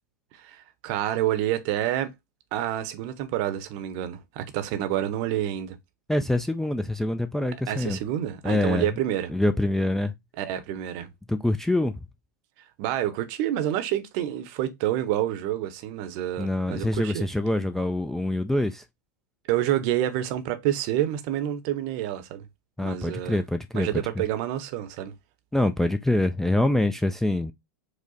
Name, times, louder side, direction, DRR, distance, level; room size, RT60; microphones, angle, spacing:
voice 1, 0.4-2.1 2.5-5.8 7.7-9.3 10.4-11.1 12.8-17.3 19.5-22.4 22.8-23.4 23.7-25.1, right 12 dB, 50° right, 0.7 m, -28 dB
voice 2, 6.1-8.0 8.4-8.9 9.3-10.1 11.3-11.9 16.4-18.8 22.8-23.9 25.5-27.5, left 1 dB, 5° left, 0.3 m, -25 dB
4.9 x 2.1 x 4.0 m
hypercardioid pair, 95°, 10 cm